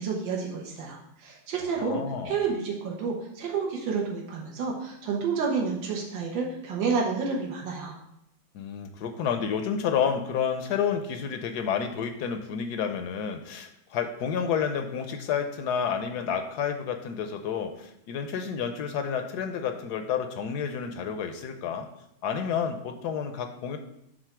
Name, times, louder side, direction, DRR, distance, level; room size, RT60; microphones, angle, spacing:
voice 1, 0.0-7.9, right 5 dB, 80° right, -1 dB, 1.9 m, -30 dB
voice 2, 1.8-2.4 8.5-21.9 22.2-23.8, left 7 dB, 70° left, 7 dB, 1.0 m, -30 dB
6.7 x 3.9 x 5.9 m, 0.82 s
omnidirectional pair, 2.0 m